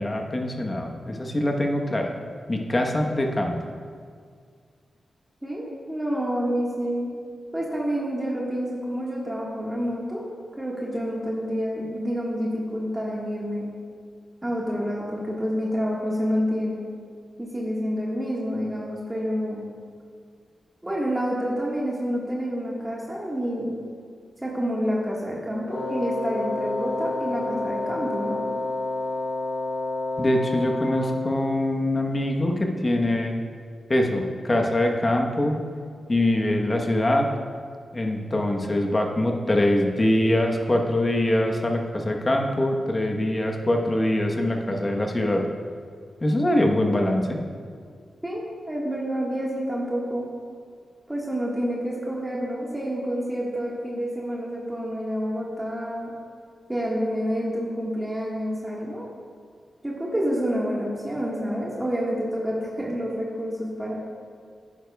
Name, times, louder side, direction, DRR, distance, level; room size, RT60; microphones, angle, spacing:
voice 1, 0.0-2.1 2.5-3.6 30.2-33.4 33.9-35.6 36.1-37.3 37.9-45.4 46.2-47.4, left 1 dB, 30° left, 2 dB, 1.1 m, -23 dB
voice 2, 5.4-7.1 7.5-10.2 10.6-13.6 14.4-16.8 17.4-19.6 20.8-23.8 24.4-28.4 48.2-50.2 51.1-56.1 56.7-59.0 59.8-63.9, equal, 15° right, -5 dB, 1.6 m, -28 dB
Wind instrument woodwind instrument, 25.7-31.4, left 2 dB, 85° left, 1.8 m, -29 dB
11.0 x 9.9 x 2.3 m, 2.1 s
cardioid pair, 65°, 0 cm